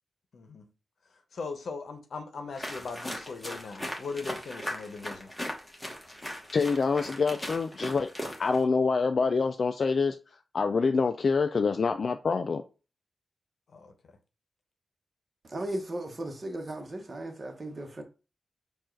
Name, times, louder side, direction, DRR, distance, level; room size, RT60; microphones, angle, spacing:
voice 1, 0.3-0.7 1.3-5.3 13.7-13.9, left 4 dB, 70° left, 0.8 m, -39 dB
sound 1, 2.5-8.6, equal, 10° left, 1.2 m, -38 dB
voice 2, 6.5-8.1 8.4-10.2 10.5-12.6, left 4 dB, 55° left, 0.3 m, -26 dB
voice 3, 15.5-18.0, right 1 dB, 35° right, 1.1 m, -36 dB
4.5 x 2.4 x 4.4 m
wide cardioid pair, 100°, 0 cm